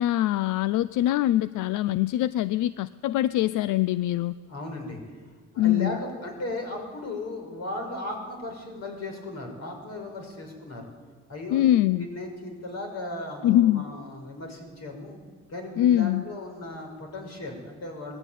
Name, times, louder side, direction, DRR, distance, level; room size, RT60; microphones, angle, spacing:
voice 1, 0.0-4.3 5.6-6.0 11.5-12.0 13.4-13.8 15.8-16.2, left 13 dB, 85° left, 16 dB, 0.5 m, -23 dB
voice 2, 4.5-5.2 5.5-10.9 11.3-11.7 11.9-15.2 15.5-18.2, left 2 dB, 55° left, 3 dB, 6.1 m, -36 dB
20.5 x 14.0 x 9.2 m, 1.5 s
cardioid pair, 90°, 30 cm